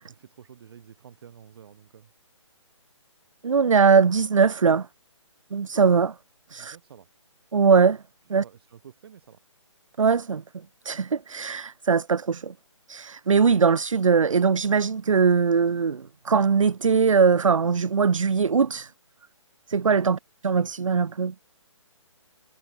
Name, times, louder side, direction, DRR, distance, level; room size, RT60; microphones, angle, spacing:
voice 1, 0.1-2.1 6.5-7.1 8.4-9.4 20.0-20.1, right 8 dB, 50° right, 4.8 m, -49 dB
voice 2, 3.4-4.9 5.5-6.1 6.5-6.8 7.5-8.0 8.3-8.4 10.0-10.4 10.8-12.5 12.9-18.9 19.7-20.2 20.4-21.3, right 5 dB, 75° right, 0.8 m, -21 dB
figure-of-eight pair, 145°, 17 cm